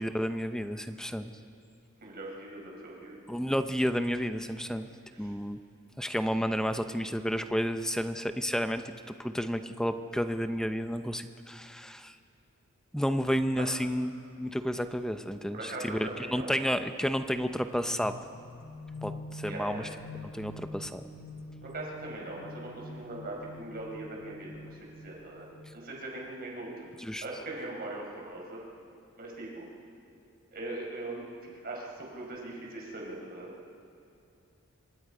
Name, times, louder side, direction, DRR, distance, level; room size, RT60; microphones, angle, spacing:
voice 1, 0.0-1.3 3.3-4.9 5.2-5.6 6.0-8.8 9.2-12.2 12.9-18.1 19.0-19.9 20.2-21.0 27.0-27.2, equal, 5° left, 9 dB, 0.7 m, -31 dB
voice 2, 2.0-3.2 5.1-5.3 13.6-13.7 15.5-16.5 19.5-19.9 21.6-25.5 25.7-26.9 27.2-28.6 29.2-29.7 30.5-33.5, right 2 dB, 45° right, -2 dB, 5.0 m, -40 dB
sound 1, 18.0-25.8, left 2 dB, 55° left, 2.1 m, -45 dB
26.0 x 25.0 x 5.0 m, 2.6 s
head